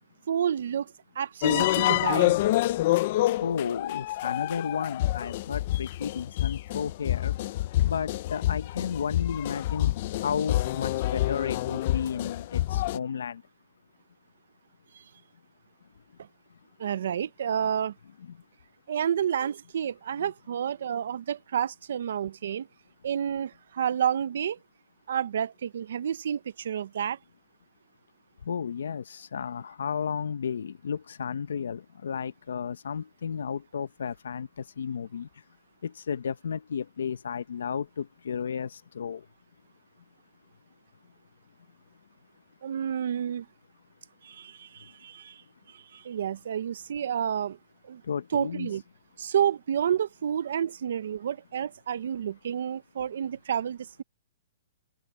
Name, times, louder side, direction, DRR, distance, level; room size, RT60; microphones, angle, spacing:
voice 1, 0.3-2.4 14.9-15.0 16.2-16.3 16.8-17.9 18.9-22.7 23.0-24.6 25.1-27.2 42.6-43.5 44.2-45.4 45.7-47.6 47.8-48.0 48.3-48.8 49.2-54.0, right 9 dB, 50° right, 0.6 m, -30 dB
sound 1, 1.4-13.0, left 15 dB, 30° left, 0.4 m, -27 dB
voice 2, 3.4-7.4 7.8-9.9 10.2-13.4 18.3-18.4 28.5-35.3 35.8-39.2 48.1-48.7, left 7 dB, 75° left, 0.8 m, -33 dB
open air
hypercardioid pair, 180°, 0 cm